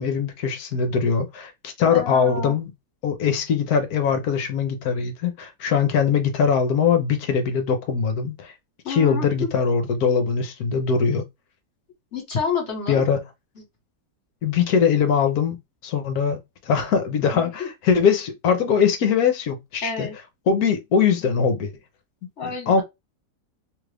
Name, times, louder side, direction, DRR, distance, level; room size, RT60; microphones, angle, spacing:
voice 1, 0.0-2.7 3.0-8.5 8.9-11.2 12.9-13.2 14.4-20.1 20.5-21.7 22.4-22.8, left 6 dB, 70° left, 1.1 m, -22 dB
voice 2, 1.8-2.5 8.8-9.3 12.1-13.1 13.6-13.7 17.3-17.7 19.8-20.1 22.4-22.8, left 5 dB, 45° left, 1.5 m, -29 dB
3.0 x 2.4 x 3.3 m
omnidirectional pair, 1.9 m